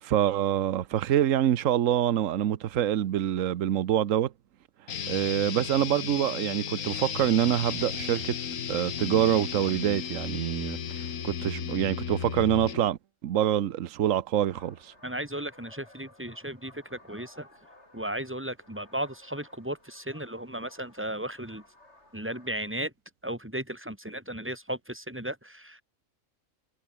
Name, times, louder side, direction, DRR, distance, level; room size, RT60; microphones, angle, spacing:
voice 1, 0.0-4.3 5.1-8.3 8.7-14.9, right 11 dB, 75° right, 1.2 m, -26 dB
sound 1, 4.9-12.9, left 8 dB, 75° left, 1.6 m, -35 dB
sound 2, 14.5-22.8, left 2 dB, 55° left, 5.9 m, -56 dB
voice 2, 15.0-17.5 17.9-21.6 22.1-22.9 23.2-25.8, right 1 dB, 10° right, 3.9 m, -35 dB
omnidirectional pair, 1.4 m